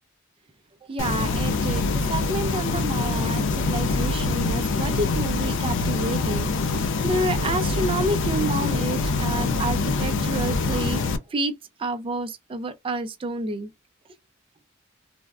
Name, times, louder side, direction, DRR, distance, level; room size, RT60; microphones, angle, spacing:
voice 1, 0.9-11.0 11.3-13.7, right 2 dB, 25° right, 0.3 m, -29 dB
sound 1, 1.0-11.2, left 3 dB, 60° left, 0.4 m, -24 dB
3.4 x 2.0 x 2.3 m
head